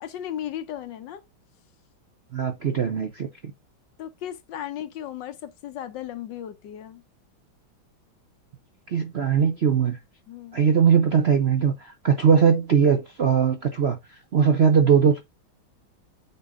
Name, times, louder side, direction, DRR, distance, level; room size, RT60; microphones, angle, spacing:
voice 1, 0.0-1.2 4.0-7.0 10.3-10.6, left 11 dB, 70° left, 1.3 m, -36 dB
voice 2, 2.3-3.5 8.9-10.0 10.5-14.0 14.3-15.2, right 7 dB, 60° right, 0.6 m, -20 dB
8.2 x 3.8 x 3.6 m
omnidirectional pair, 2.2 m